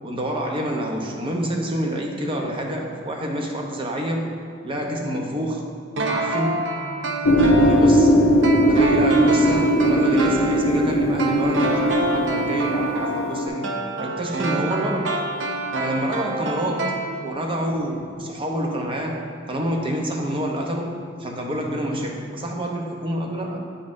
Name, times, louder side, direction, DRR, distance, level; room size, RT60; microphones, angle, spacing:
voice 1, 0.0-4.3 4.6-5.6 6.0-6.7 7.6-8.2 8.7-13.7 14.0-15.2 15.8-23.7, equal, 30° right, 1 dB, 0.7 m, -27 dB
sound 1, 6.0-17.6 17.9-18.0, right 2 dB, 70° right, 0.6 m, -27 dB
sound 2, 7.2-13.5, equal, 75° left, 0.6 m, -19 dB
8.5 x 5.4 x 2.6 m, 2.3 s
head